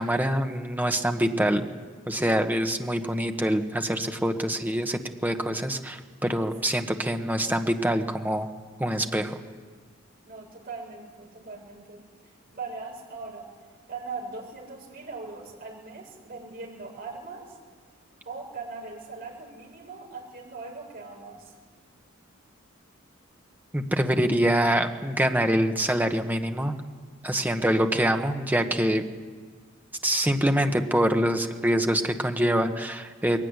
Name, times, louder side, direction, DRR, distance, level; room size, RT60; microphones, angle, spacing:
voice 1, 0.0-1.7 2.1-8.5 8.8-9.3 23.7-26.7 27.2-29.0 30.0-33.4, right 1 dB, 10° right, 5 dB, 1.3 m, -25 dB
voice 2, 10.2-12.0 12.5-13.5 13.9-17.6 18.2-21.5 27.4-27.7, right 4 dB, 45° right, -2 dB, 7.3 m, -40 dB
22.0 x 17.0 x 9.8 m, 1.5 s
head